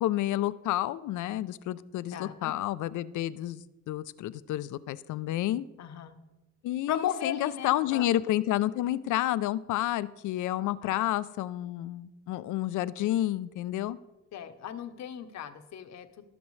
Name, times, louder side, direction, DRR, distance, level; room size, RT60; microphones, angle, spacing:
voice 1, 0.0-5.7 6.6-14.0, left 14 dB, 80° left, 16 dB, 0.5 m, -30 dB
voice 2, 2.1-2.5 5.8-6.2 6.9-8.1 10.8-11.0 14.3-16.2, left 9 dB, 65° left, 10 dB, 0.9 m, -36 dB
17.0 x 6.0 x 3.2 m, 1.1 s
cardioid pair, 90°, 30 cm